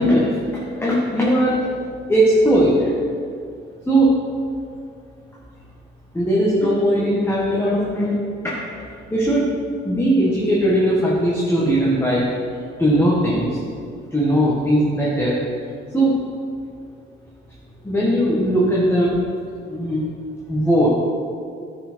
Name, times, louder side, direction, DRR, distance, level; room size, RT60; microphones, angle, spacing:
voice 1, 0.0-1.7 2.1-2.9 3.9-4.2 6.1-8.2 8.4-8.6 9.1-9.5 9.8-12.2 12.8-13.6 14.1-15.4 15.9-16.2 17.8-19.2 19.7-20.0 20.5-20.9, right 1 dB, 10° left, -6 dB, 1.6 m, -18 dB
10.0 x 5.0 x 4.5 m, 2.3 s
cardioid pair, 90°, 20 cm